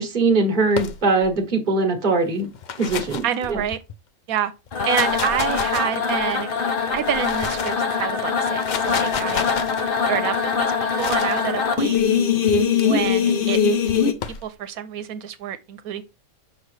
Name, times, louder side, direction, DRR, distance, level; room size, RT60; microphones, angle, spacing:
voice 1, 0.0-2.5 2.8-3.2 3.5-3.6, right 3 dB, 35° right, 1.4 m, -21 dB
sound 1, 0.7-1.4 2.4-3.9 4.7-6.3 6.9-7.9 8.4-9.8 11.0-11.4 12.5-12.8 13.9-14.5, left 7 dB, 75° left, 0.4 m, -32 dB
voice 2, 3.2-3.8 4.3-4.5 4.8-6.5 6.9-9.4 10.1-12.0 12.8-13.6 14.4-16.0, right 10 dB, 85° right, 1.1 m, -27 dB
sound 2, 4.7-14.1, left 6 dB, 45° left, 0.9 m, -22 dB
6.1 x 5.4 x 3.2 m
omnidirectional pair, 1.5 m